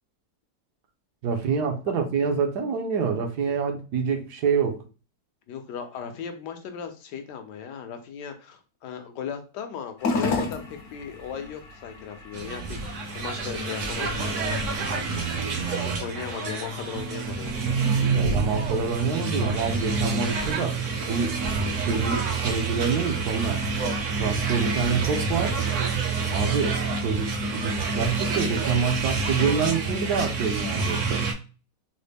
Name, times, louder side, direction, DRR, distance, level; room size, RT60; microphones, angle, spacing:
voice 1, 1.2-4.8 18.1-20.8 21.1-21.4 21.8-23.6 24.0-25.6 26.3-31.3, right 5 dB, 75° right, 1.2 m, -27 dB
voice 2, 5.5-14.1 15.8-17.7, left 7 dB, 75° left, 1.1 m, -37 dB
sound 1, 10.0-28.6, left 3 dB, 60° left, 0.8 m, -39 dB
sound 2, 12.3-31.3, right 4 dB, 55° right, 0.9 m, -27 dB
4.0 x 2.1 x 3.3 m
omnidirectional pair, 1.9 m